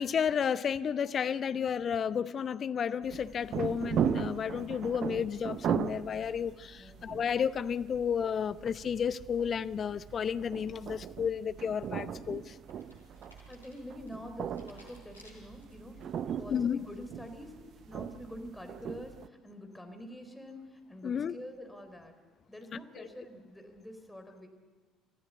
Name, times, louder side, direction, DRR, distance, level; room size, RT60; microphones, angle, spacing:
voice 1, 0.0-12.5 16.5-16.8 21.0-21.4 22.7-23.1, left 7 dB, 40° left, 0.7 m, -32 dB
sound 1, 3.0-19.3, right 8 dB, 50° right, 0.7 m, -38 dB
voice 2, 6.7-7.2 12.0-12.2 13.5-17.5 17.9-22.1 22.5-24.5, equal, 5° left, 3.8 m, -46 dB
sound 2, 11.8-16.0 16.5-16.9, left 1 dB, 90° left, 3.9 m, -60 dB
26.0 x 14.5 x 8.2 m
figure-of-eight pair, 55°, 0 cm